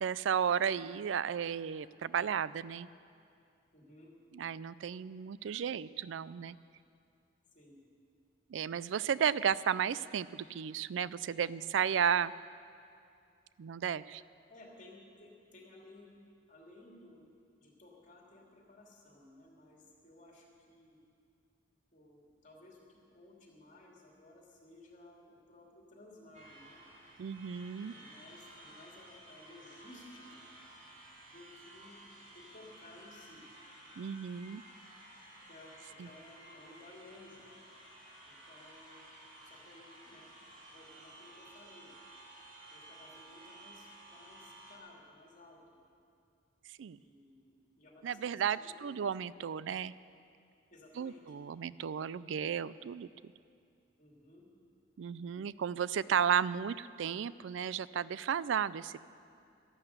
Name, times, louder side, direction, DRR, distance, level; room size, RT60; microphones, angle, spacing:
voice 1, 0.0-2.9 4.3-6.6 8.5-12.3 13.6-14.2 27.2-27.9 34.0-34.6 36.0-36.1 46.7-47.0 48.0-49.9 51.0-53.1 55.0-59.0, right 8 dB, 70° right, 18 dB, 0.4 m, -33 dB
voice 2, 3.7-4.1 7.5-7.8 14.5-16.1 16.5-17.3 17.6-21.0 21.9-26.8 27.7-30.5 31.2-32.0 32.3-33.4 35.5-37.5 38.3-39.0 39.5-40.3 40.7-41.9 42.7-45.8 46.9-49.2 50.7-51.4 54.0-54.5, left 2 dB, 40° left, -2 dB, 2.7 m, -57 dB
sound 1, 26.3-44.8, right 1 dB, 45° right, 3.1 m, -55 dB
13.0 x 11.5 x 8.0 m, 2.4 s
head